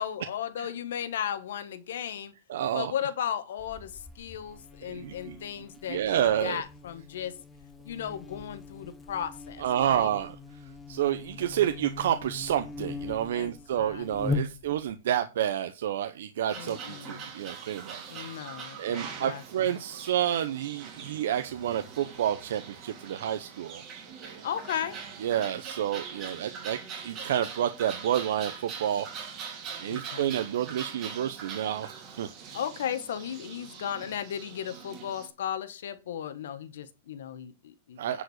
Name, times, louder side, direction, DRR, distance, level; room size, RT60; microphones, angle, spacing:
voice 1, 0.0-2.3 2.7-7.4 7.8-10.1 13.3-14.0 14.3-14.6 16.5-17.3 18.1-19.7 24.4-25.0 29.9-30.3 32.5-38.2, left 9 dB, 75° left, 1.6 m, -36 dB
voice 2, 2.5-2.9 4.9-5.4 5.9-6.6 9.6-10.4 10.9-18.0 18.8-23.8 25.2-26.8 27.0-29.1 29.8-32.3 38.0-38.2, right 10 dB, 65° right, 0.9 m, -29 dB
Buzz, 3.6-15.0, left 3 dB, 10° left, 0.8 m, -40 dB
sound 1, 16.5-35.3, right 6 dB, 25° right, 2.9 m, -43 dB
10.0 x 5.1 x 6.6 m
supercardioid pair, 170°, 0 cm